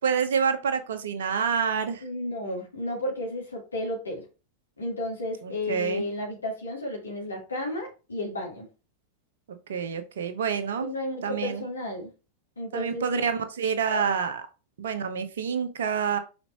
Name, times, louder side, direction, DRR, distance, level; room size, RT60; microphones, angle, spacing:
voice 1, 0.0-2.0 5.4-6.0 9.7-10.9 11.2-11.6 12.7-14.4 14.8-16.2, right 6 dB, 60° right, 8 dB, 1.0 m, -27 dB
voice 2, 2.0-4.2 4.8-8.7 10.8-12.1 12.6-13.0 13.9-14.1, left 1 dB, 75° left, -2 dB, 2.1 m, -33 dB
5.7 x 4.4 x 4.2 m, 0.32 s
figure-of-eight pair, 90°, 0 cm